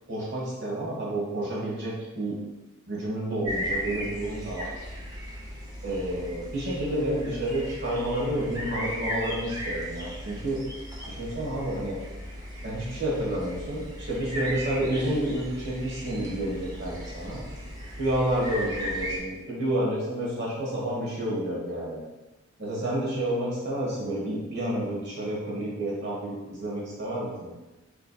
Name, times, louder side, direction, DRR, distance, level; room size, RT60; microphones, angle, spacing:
voice 1, 0.1-2.4 2.9-4.7 5.8-10.6 11.1-12.0 12.6-17.4 18.0-22.0 22.6-27.5, right 1 dB, 60° right, -5 dB, 1.3 m, -30 dB
sound 1, 3.4-19.2, equal, 20° right, 0.5 m, -36 dB
3.9 x 3.3 x 2.3 m, 1.1 s
head